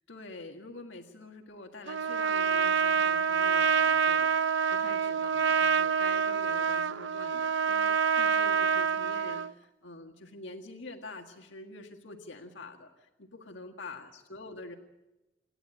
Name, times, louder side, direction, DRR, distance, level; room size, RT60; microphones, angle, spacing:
voice 1, 0.1-14.8, left 2 dB, 80° left, 3 dB, 1.8 m, -46 dB
Trumpet, 1.9-9.5, right 6 dB, 75° right, 0.6 m, -27 dB
29.0 x 11.0 x 8.8 m, 1.0 s
head